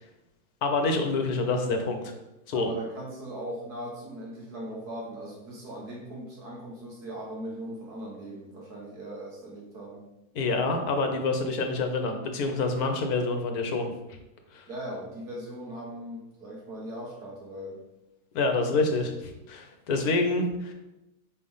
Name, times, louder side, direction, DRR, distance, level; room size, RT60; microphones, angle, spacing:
voice 1, 0.6-2.1 2.5-2.7 10.3-13.9 14.5-14.7 18.3-20.7, left 3 dB, 75° left, 5 dB, 1.3 m, -27 dB
voice 2, 2.5-10.0 14.7-17.8, right 1 dB, 80° right, -3 dB, 2.1 m, -39 dB
5.1 x 3.4 x 5.5 m, 0.95 s
omnidirectional pair, 1.6 m